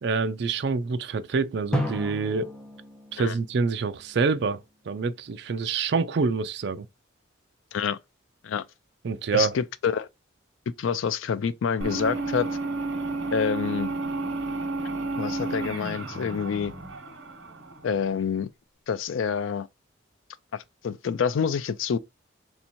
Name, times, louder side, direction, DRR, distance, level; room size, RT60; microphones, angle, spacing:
voice 1, 0.0-2.5 3.1-6.9 9.0-9.5, right 4 dB, 55° right, 0.4 m, -26 dB
Drum, 1.7-4.4, equal, 5° left, 0.7 m, -33 dB
voice 2, 9.3-10.1 10.8-12.5 13.3-13.9 15.2-16.7 17.8-18.5 18.9-19.7 20.5-22.0, left 6 dB, 75° left, 0.4 m, -27 dB
sound 1, 11.8-18.2, right 3 dB, 75° right, 1.1 m, -32 dB
3.4 x 2.8 x 4.3 m
head